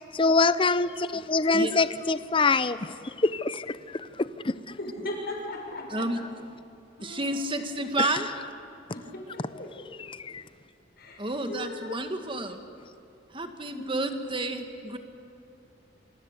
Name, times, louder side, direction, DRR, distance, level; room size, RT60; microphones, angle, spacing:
voice 1, 0.1-2.8 3.2-3.8 4.2-4.5 8.0-8.1 10.2-10.4, left 3 dB, 25° left, 14 dB, 0.7 m, -24 dB
voice 2, 4.8-6.1 7.0-7.5 8.9-9.7 11.0-12.1 13.7-14.1, left 1 dB, 55° left, 0 dB, 6.6 m, -38 dB
voice 3, 7.0-8.3 11.2-12.6 13.3-15.0, right 2 dB, 25° right, 7 dB, 1.9 m, -30 dB
27.0 x 26.0 x 8.3 m, 2.6 s
head